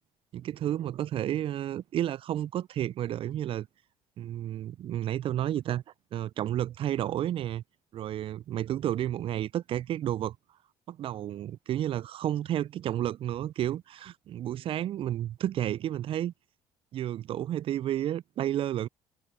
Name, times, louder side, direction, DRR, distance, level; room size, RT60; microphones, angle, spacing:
voice 1, 0.3-3.7 4.2-5.8 6.1-7.6 7.9-10.4 10.9-16.3 16.9-18.9, right 12 dB, 50° right, 0.4 m, -31 dB
open air
hypercardioid pair, 65°, 12 cm